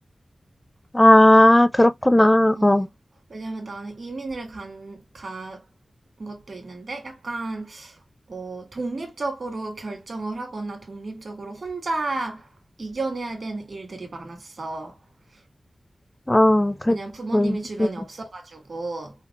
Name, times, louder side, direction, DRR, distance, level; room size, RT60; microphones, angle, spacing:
voice 1, 0.9-2.9 16.3-17.0 17.3-17.9, left 1 dB, 15° left, 0.4 m, -16 dB
voice 2, 2.6-2.9 3.3-5.6 6.2-7.9 8.3-12.5 12.8-15.0 16.9-19.1, right 2 dB, 65° right, 1.8 m, -33 dB
5.2 x 2.3 x 2.4 m
wide cardioid pair, 70°, 0 cm